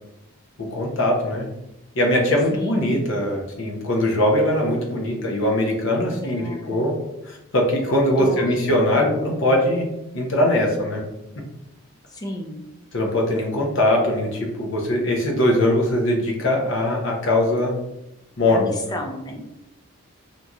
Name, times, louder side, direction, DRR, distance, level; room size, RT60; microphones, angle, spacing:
voice 1, 0.6-1.5 2.0-6.9 7.3-9.9 10.1-11.0 12.9-17.7 18.4-18.9, left 1 dB, 60° left, 0 dB, 0.6 m, -21 dB
voice 2, 2.5-2.9 6.2-7.0 8.2-8.6 8.9-9.2 12.1-12.6 18.5-19.4, equal, 20° left, 2 dB, 0.3 m, -33 dB
2.9 x 2.6 x 2.3 m, 0.92 s
head